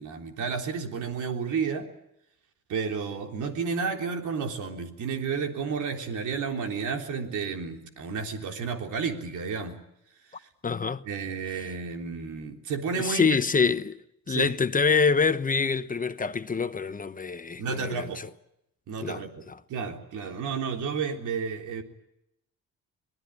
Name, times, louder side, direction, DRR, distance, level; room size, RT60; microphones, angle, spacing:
voice 1, 0.0-1.9 2.7-9.8 10.4-10.5 11.1-13.4 14.3-14.5 17.6-18.2 18.9-19.4 19.7-21.8, right 5 dB, 75° right, 3.6 m, -31 dB
voice 2, 10.6-11.0 11.6-11.7 12.9-14.0 14.3-18.3 19.0-19.2 19.5-19.6, left 5 dB, 30° left, 1.0 m, -26 dB
26.0 x 19.0 x 10.0 m
cardioid pair, 90°, 30 cm